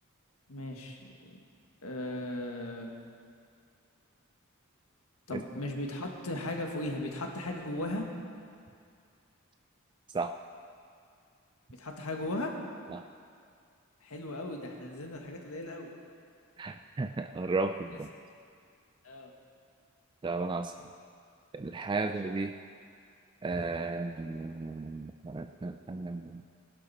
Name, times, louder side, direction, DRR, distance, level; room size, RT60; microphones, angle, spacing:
voice 1, 0.5-1.0 1.3-1.4 1.8-3.0 5.3-8.1 11.8-12.5 14.0-15.9 17.9-18.0 19.0-19.3, left 1 dB, 80° left, 2 dB, 1.7 m, -37 dB
voice 2, 16.6-18.1 20.2-20.7 21.5-22.5 23.4-26.4, right 3 dB, 20° right, 7 dB, 0.3 m, -34 dB
19.5 x 11.5 x 4.2 m, 2.3 s
head